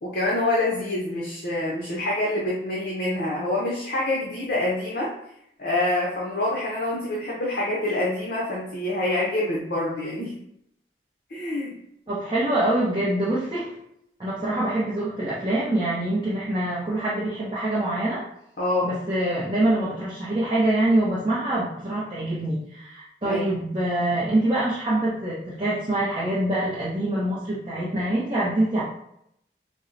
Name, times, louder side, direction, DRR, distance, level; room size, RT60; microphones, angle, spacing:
voice 1, 0.0-5.1 5.6-10.4 11.3-11.8 18.6-18.9 23.2-23.5, left 2 dB, 55° left, -4 dB, 0.6 m, -26 dB
voice 2, 12.1-13.7 14.2-18.2 18.8-28.8, right 1 dB, 30° right, -8 dB, 0.6 m, -25 dB
4.2 x 2.0 x 2.5 m, 0.76 s
head